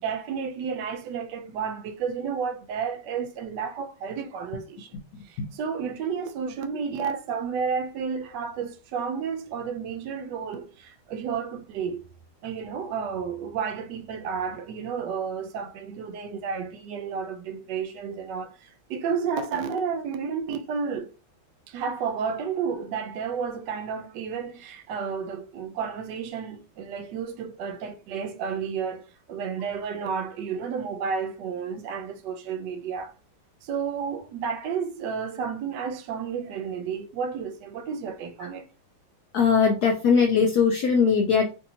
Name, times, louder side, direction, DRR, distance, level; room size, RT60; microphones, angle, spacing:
voice 1, 0.0-4.9 5.2-12.0 12.4-21.1 21.7-29.0 29.3-33.1 33.6-38.7, right 6 dB, 75° right, 1.0 m, -31 dB
voice 2, 39.3-41.5, left 6 dB, 85° left, 0.8 m, -20 dB
3.2 x 2.7 x 2.7 m
omnidirectional pair, 2.2 m